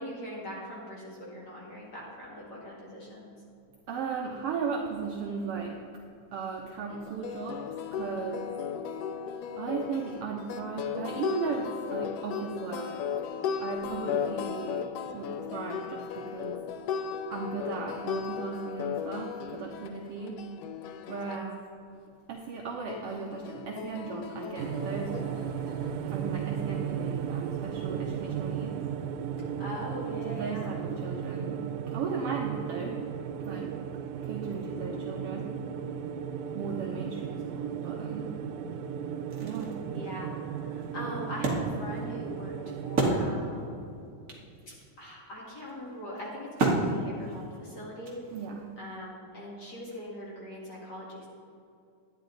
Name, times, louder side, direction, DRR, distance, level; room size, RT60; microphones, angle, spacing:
voice 1, 0.0-3.4 13.8-14.1 20.2-20.4 21.2-21.5 29.6-30.7 34.7-34.9 39.9-40.4 40.7-42.5 42.8-43.9 45.0-48.2 48.8-51.3, equal, 35° left, -5 dB, 2.4 m, -41 dB
voice 2, 3.9-5.8 6.3-7.6 7.9-8.5 9.6-13.0 13.6-16.6 17.3-20.4 21.1-21.5 22.3-25.5 26.1-28.8 30.2-33.0 33.4-33.7 34.2-35.6 36.5-38.4 39.4-39.8 48.3-48.7, right 5 dB, 70° right, 0 dB, 1.4 m, -36 dB
sound 1, 6.9-21.4 22.9-25.9, left 7 dB, 80° left, 1.4 m, -36 dB
sound 2, 24.6-43.3, right 8 dB, 90° right, 2.0 m, -35 dB
Wood, 39.3-43.7 44.0-44.1 44.3-48.6, right 2 dB, 40° right, 1.2 m, -32 dB
11.5 x 9.8 x 3.9 m, 2.6 s
omnidirectional pair, 3.4 m